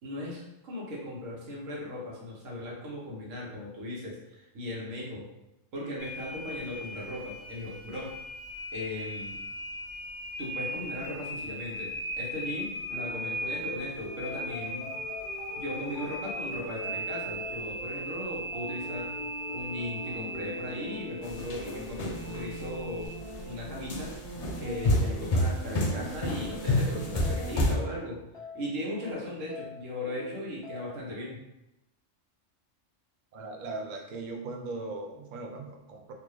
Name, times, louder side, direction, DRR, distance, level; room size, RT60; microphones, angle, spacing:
voice 1, 0.0-5.3 5.7-8.1 8.7-9.4 10.4-11.9 12.2-14.9 15.6-19.1 19.5-23.1 23.5-24.1 24.6-28.2 28.5-31.4, left 1 dB, 85° right, -4 dB, 1.4 m, -37 dB
sound 1, 6.0-23.1, equal, 25° right, 0.8 m, -38 dB
sound 2, 12.9-31.2, equal, 25° left, 0.7 m, -42 dB
sound 3, 21.2-22.6 23.2-23.4 23.9-27.7, left 1 dB, 70° left, 0.3 m, -28 dB
voice 2, 33.3-36.1, right 3 dB, 60° right, 2 dB, 0.5 m, -39 dB
3.6 x 2.5 x 3.1 m, 0.88 s
omnidirectional pair, 1.3 m